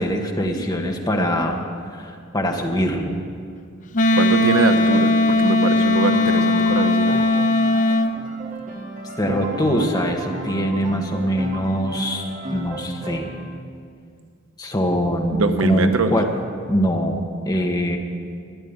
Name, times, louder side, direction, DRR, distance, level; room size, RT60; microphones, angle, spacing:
voice 1, 0.0-1.6 1.9-3.2 9.2-13.3 14.6-16.3 16.6-18.0, equal, 20° left, 2 dB, 1.5 m, -23 dB
Wind instrument woodwind instrument, 3.9-8.1, left 2 dB, 40° left, 0.6 m, -18 dB
voice 2, 4.1-7.2 15.3-16.2, right 3 dB, 90° right, 8 dB, 1.0 m, -22 dB
Piano, 6.1-13.4, right 1 dB, 40° right, 2.1 m, -34 dB
13.0 x 10.5 x 9.7 m, 2.3 s
head